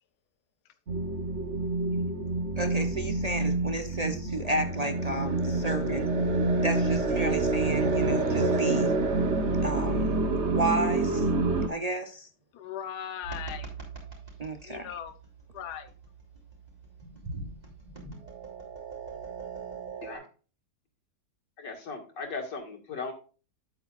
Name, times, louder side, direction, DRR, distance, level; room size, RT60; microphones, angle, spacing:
sound 1, 0.9-11.7, right 2 dB, 45° right, 1.3 m, -27 dB
voice 1, 2.6-6.1 6.6-8.9 9.6-10.2 10.5-11.3 11.7-12.3 14.4-14.9, right 2 dB, 65° right, 0.3 m, -32 dB
voice 2, 12.5-13.7 14.6-15.2 15.5-15.9, left 9 dB, 70° left, 1.3 m, -38 dB
sound 2, 13.2-20.2, right 5 dB, 25° right, 3.4 m, -42 dB
voice 3, 21.6-23.1, left 4 dB, 90° left, 2.7 m, -37 dB
9.8 x 8.4 x 2.5 m
omnidirectional pair, 1.8 m